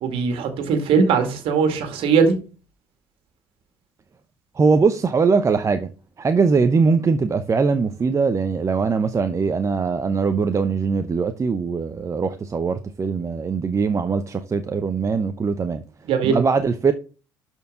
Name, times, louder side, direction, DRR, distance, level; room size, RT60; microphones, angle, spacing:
voice 1, 0.0-2.3 16.1-16.4, right 5 dB, 55° right, 2.1 m, -20 dB
voice 2, 4.5-5.9 6.2-15.8 16.2-16.9, right 5 dB, 30° right, 0.8 m, -21 dB
12.0 x 4.6 x 3.8 m
figure-of-eight pair, 55°, 11 cm